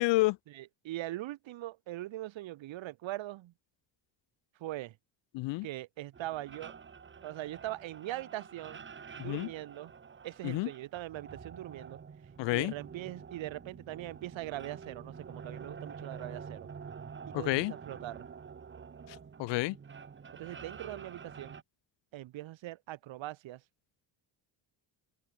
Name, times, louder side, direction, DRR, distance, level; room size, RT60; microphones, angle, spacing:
voice 1, 0.0-0.4 5.3-5.7 9.2-9.5 10.4-10.7 12.4-12.7 17.3-17.7 19.1-19.8, left 21 dB, 70° left, 0.5 m, -30 dB
voice 2, 0.5-3.5 4.6-5.0 5.6-6.7 7.2-8.8 9.2-9.9 10.2-12.0 12.5-16.7 17.3-18.3 20.4-21.6 22.1-23.6, right 15 dB, 75° right, 3.2 m, -41 dB
sound 1, 6.1-21.6, right 6 dB, 25° right, 1.2 m, -48 dB
open air
cardioid pair, 110°, 46 cm